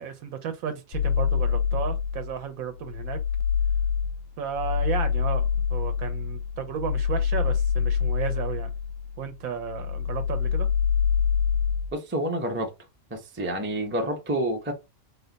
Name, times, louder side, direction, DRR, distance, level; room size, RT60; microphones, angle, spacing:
voice 1, 0.0-3.2 4.4-8.7 9.2-10.7, right 7 dB, 90° right, 1.1 m, -33 dB
sound 1, 0.9-2.4 2.8-9.3 9.6-11.9, left 7 dB, 85° left, 1.0 m, -26 dB
voice 2, 11.9-12.7 13.1-14.7, right 1 dB, 15° right, 0.4 m, -28 dB
4.1 x 2.2 x 3.9 m
omnidirectional pair, 1.4 m